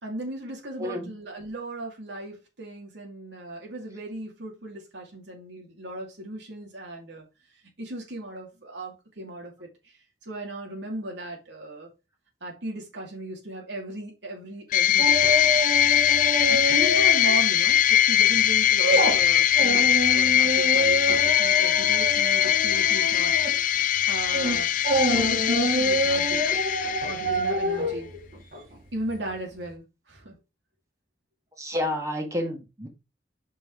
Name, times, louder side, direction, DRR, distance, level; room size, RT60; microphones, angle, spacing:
voice 1, 0.0-7.2 7.8-9.7 10.2-11.9 12.4-15.3 16.5-19.9 20.1-23.3 23.8-24.7 25.0-26.4 27.1-28.1 28.9-30.3, right 1 dB, 70° right, 2.6 m, -36 dB
voice 2, 0.8-1.1 31.6-32.9, left 1 dB, 15° right, 1.7 m, -30 dB
sound 1, 14.7-27.6, left 11 dB, 45° left, 0.3 m, -21 dB
sound 2, 15.0-17.4 17.7-17.9 18.3-29.3 29.6-29.7, right 1 dB, 50° right, 2.0 m, -27 dB
5.5 x 5.1 x 4.9 m
head